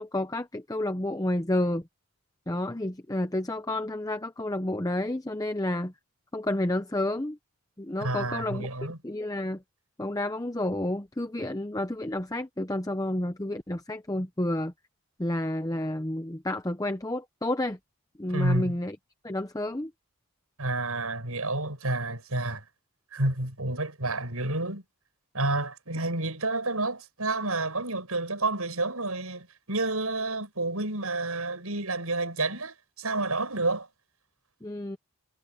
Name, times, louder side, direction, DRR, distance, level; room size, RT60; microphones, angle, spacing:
voice 1, 0.0-1.8 2.5-5.9 6.3-7.4 7.8-8.7 9.0-9.6 10.0-14.7 15.2-17.8 18.2-19.0 19.2-19.9 34.6-35.0, left 1 dB, 15° left, 0.7 m, -30 dB
voice 2, 8.0-9.0 18.3-18.8 20.6-22.6 23.1-24.8 25.3-33.9, right 2 dB, 80° right, 7.3 m, -29 dB
head